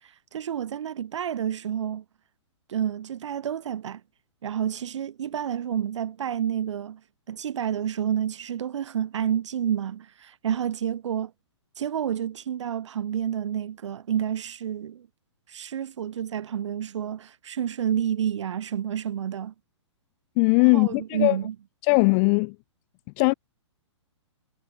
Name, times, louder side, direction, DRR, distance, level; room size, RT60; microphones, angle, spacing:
voice 1, 0.3-2.0 2.7-4.0 4.4-7.0 7.3-11.3 11.8-15.1 15.5-19.5 20.7-21.5, right 9 dB, 75° right, 0.4 m, -29 dB
voice 2, 20.4-21.4 21.8-22.5 23.2-23.3, left 36 dB, 35° left, 0.7 m, -20 dB
hypercardioid pair, 125°, 15 cm